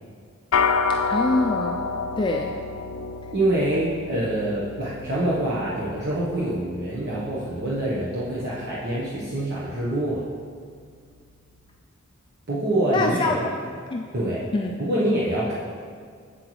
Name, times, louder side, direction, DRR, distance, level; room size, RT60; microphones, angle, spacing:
sound 1, 0.5-10.0, left 4 dB, 90° left, 0.4 m, -30 dB
voice 1, 1.1-1.9 2.2-2.5 12.9-13.3 13.9-14.0 14.5-14.8, left 2 dB, 25° left, 1 dB, 0.3 m, -24 dB
voice 2, 3.3-10.3 12.5-13.5 14.1-14.5 14.8-15.5, right 1 dB, 55° right, -7 dB, 1.0 m, -25 dB
7.9 x 7.8 x 3.1 m, 2.1 s
head